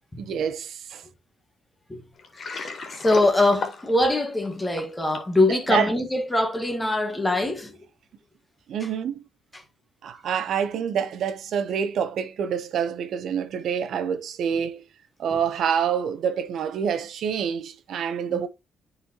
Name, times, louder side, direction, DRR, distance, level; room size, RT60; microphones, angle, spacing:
voice 1, 0.2-1.0 5.5-5.9 8.7-9.1 10.0-14.8 15.2-18.5, right 7 dB, 70° right, 0.7 m, -27 dB
Water, 2.2-5.4, left 5 dB, 50° left, 2.0 m, -34 dB
voice 2, 3.0-7.8 9.5-9.6 15.3-15.4 18.3-18.4, left 2 dB, 15° left, 1.4 m, -23 dB
10.0 x 4.0 x 2.8 m
cardioid pair, 90°, 0 cm